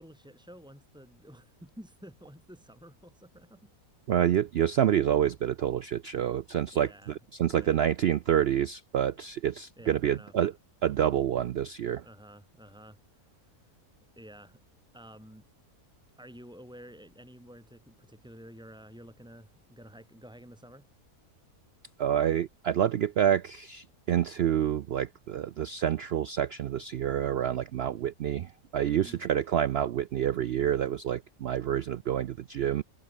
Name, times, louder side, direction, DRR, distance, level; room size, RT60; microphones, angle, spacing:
voice 1, 0.0-3.7 6.7-7.2 7.4-7.8 9.8-10.3 12.0-13.5 14.2-14.6 14.9-15.5 16.2-20.9 28.9-29.2, equal, 5° right, 7.9 m, -51 dB
voice 2, 4.1-10.5 10.8-12.0 22.0-32.8, right 10 dB, 70° right, 0.5 m, -28 dB
omnidirectional pair, 1.6 m